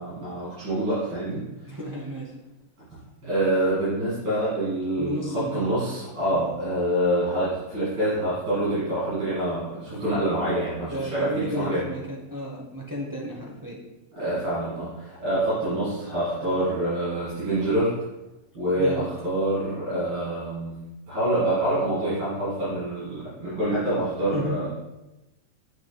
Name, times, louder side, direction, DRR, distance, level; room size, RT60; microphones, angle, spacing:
voice 1, 0.0-1.7 3.2-11.9 14.2-17.9 18.5-20.7 21.1-24.7, right 1 dB, 85° right, -13 dB, 3.3 m, -26 dB
voice 2, 1.6-2.3 5.0-5.8 6.3-6.5 10.9-13.8 18.8-19.1 24.3-24.7, equal, 20° right, -2 dB, 0.5 m, -32 dB
8.5 x 6.1 x 2.3 m, 1.0 s
omnidirectional pair, 1.9 m